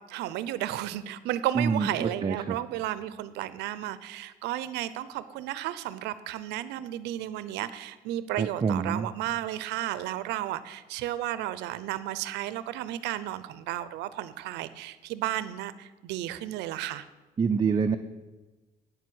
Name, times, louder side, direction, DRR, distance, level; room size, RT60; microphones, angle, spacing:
voice 1, 0.1-17.1, right 13 dB, 90° right, 15 dB, 0.7 m, -33 dB
voice 2, 1.5-2.6 8.4-9.1 17.4-18.0, right 5 dB, 25° right, 5 dB, 0.5 m, -26 dB
9.0 x 7.5 x 7.9 m, 1.2 s
cardioid pair, 110°, 17 cm